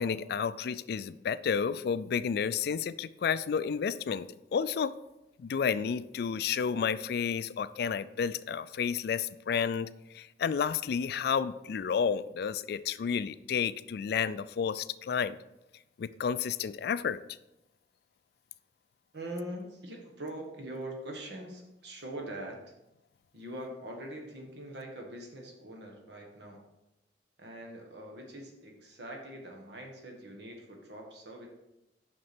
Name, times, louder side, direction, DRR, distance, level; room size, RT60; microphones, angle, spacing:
voice 1, 0.0-4.9 5.4-15.4 16.0-17.2, left 6 dB, 60° left, 16 dB, 0.3 m, -31 dB
voice 2, 19.1-22.6 23.3-26.6 27.4-31.5, right 1 dB, 70° right, 1 dB, 1.5 m, -43 dB
6.4 x 5.9 x 4.3 m, 0.91 s
head